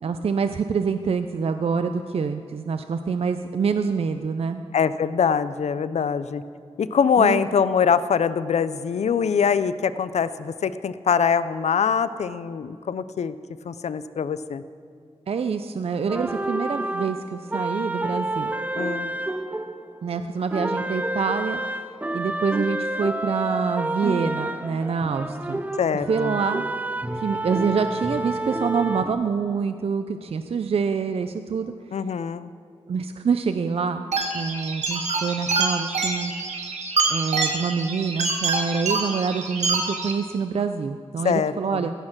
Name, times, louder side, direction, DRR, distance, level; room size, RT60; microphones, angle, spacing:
voice 1, 0.0-4.6 7.2-7.4 15.3-18.5 20.0-21.6 22.1-25.6 26.1-26.6 27.2-31.7 32.9-36.3 37.1-41.9, right 5 dB, 60° right, 8 dB, 0.4 m, -26 dB
voice 2, 4.7-6.4 6.8-13.3 13.6-14.6 18.7-19.1 25.8-26.4 31.9-32.5 41.2-41.5, left 7 dB, 75° left, 14 dB, 0.4 m, -23 dB
sound 1, 16.1-20.2 20.5-29.1, right 1 dB, 15° right, 0.5 m, -29 dB
sound 2, 34.1-40.1, right 3 dB, 85° right, 1.3 m, -26 dB
15.5 x 6.5 x 6.0 m, 2.2 s
wide cardioid pair, 100°, 12 cm